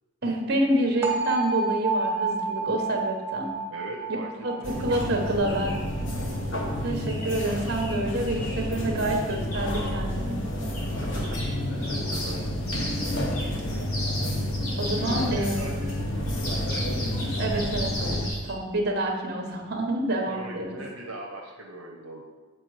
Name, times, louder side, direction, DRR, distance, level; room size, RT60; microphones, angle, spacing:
voice 1, 0.2-3.6 4.4-5.9 6.8-10.4 14.8-15.9 17.4-20.8, right 1 dB, 45° right, 2 dB, 1.2 m, -28 dB
sound 1, 1.0-6.9, right 4 dB, 10° right, 0.8 m, -30 dB
voice 2, 3.7-4.3 4.6-4.8 5.1-5.6 11.0-11.4 11.8-12.4 15.0-16.9 20.3-22.2, right 2 dB, 70° right, -1 dB, 0.8 m, -40 dB
sound 2, 4.6-18.3, left 1 dB, 55° left, 1.0 m, -30 dB
sound 3, 5.0-5.1 5.4-5.9 7.1-8.7 9.3-9.9 10.7-10.9 11.2-15.6 16.3-18.5, left 1 dB, 90° left, 2.4 m, -36 dB
7.5 x 4.5 x 4.9 m, 1.3 s
head